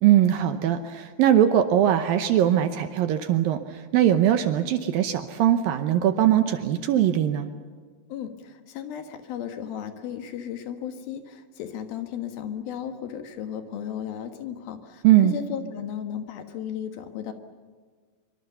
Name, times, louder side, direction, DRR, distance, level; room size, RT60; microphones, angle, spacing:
voice 1, 0.0-7.5 15.0-15.3, right 11 dB, 75° right, 9 dB, 2.3 m, -21 dB
voice 2, 8.1-15.0 15.3-17.3, left 9 dB, 65° left, 7 dB, 3.1 m, -35 dB
24.5 x 24.5 x 6.9 m, 1.5 s
omnidirectional pair, 4.8 m